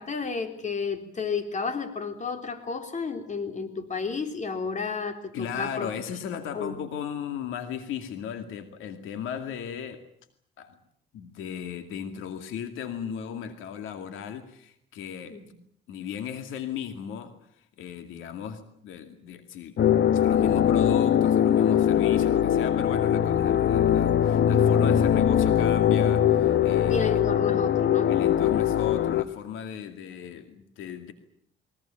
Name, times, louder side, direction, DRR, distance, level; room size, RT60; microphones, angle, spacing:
voice 1, 0.0-5.9 6.5-6.8 15.3-15.4 26.9-28.6, left 5 dB, 40° left, 7 dB, 3.7 m, -31 dB
voice 2, 5.3-10.0 10.6-10.8 11.1-15.4 15.9-19.8 20.1-27.1 28.1-31.1, left 8 dB, 90° left, 8 dB, 2.3 m, -36 dB
sound 1, 19.8-29.2, left 9 dB, 60° left, 1.1 m, -21 dB
22.5 x 21.0 x 8.9 m, 0.66 s
cardioid pair, 90°, 20 cm